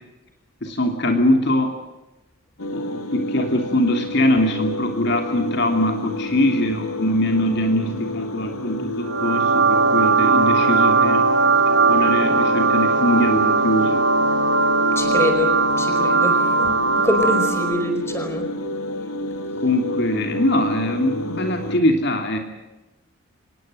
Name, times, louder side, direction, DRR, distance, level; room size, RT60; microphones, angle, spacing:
voice 1, 0.6-1.7 2.7-11.2 11.8-14.0 19.6-22.4, left 1 dB, 50° left, 4 dB, 2.9 m, -22 dB
sound 1, 2.6-21.8, left 1 dB, 85° left, 2.4 m, -29 dB
sound 2, 9.1-17.9, right 4 dB, 55° right, 1.0 m, -19 dB
voice 2, 14.9-18.5, left 1 dB, 10° left, 6 dB, 4.9 m, -25 dB
26.0 x 20.5 x 7.8 m, 1.0 s
head